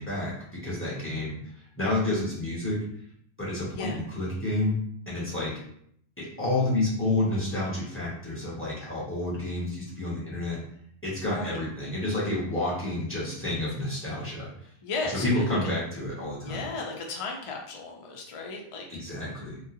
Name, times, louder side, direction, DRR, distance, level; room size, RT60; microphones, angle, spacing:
voice 1, 0.0-1.4 1.7-2.8 3.4-5.5 6.2-10.6 11.0-14.5 15.1-16.6 18.9-19.6, left 2 dB, 10° left, -7 dB, 1.1 m, -29 dB
voice 2, 11.2-11.6 14.8-15.6 16.4-18.9, left 3 dB, 60° left, 0 dB, 0.3 m, -35 dB
3.7 x 2.2 x 2.7 m, 0.68 s
omnidirectional pair, 1.2 m